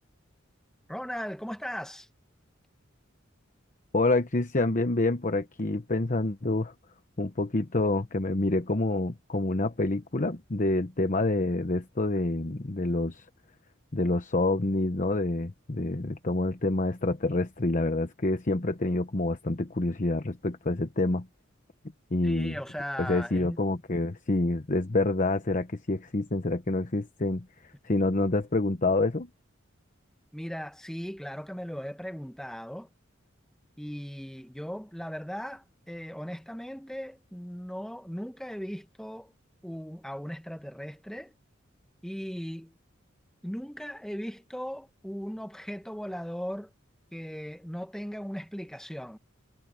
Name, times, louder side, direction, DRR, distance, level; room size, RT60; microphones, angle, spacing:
voice 1, 0.9-2.1 22.2-23.6 30.3-32.9 33.8-39.3 39.6-41.3 42.0-42.7 43.4-46.7 47.1-49.2, equal, 5° left, 1.2 m, -38 dB
voice 2, 3.9-6.7 7.2-13.3 13.9-21.3 22.1-22.6 23.0-27.5 27.8-29.3, left 2 dB, 40° left, 1.0 m, -27 dB
head